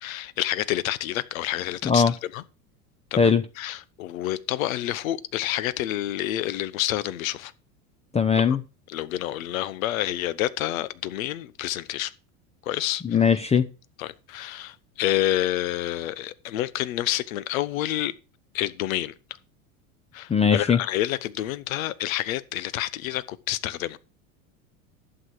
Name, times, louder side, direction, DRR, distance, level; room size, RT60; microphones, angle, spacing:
voice 1, 0.0-2.0 2.3-2.4 3.1-3.3 3.6-7.5 8.5-8.6 8.9-12.1 12.6-13.0 14.0-18.1 18.5-19.1 20.1-24.0, left 14 dB, 70° left, 1.1 m, -28 dB
voice 2, 8.1-8.6 13.0-13.7 20.3-20.8, left 6 dB, 15° left, 0.6 m, -20 dB
11.5 x 8.1 x 4.7 m
hypercardioid pair, 85°, 43 cm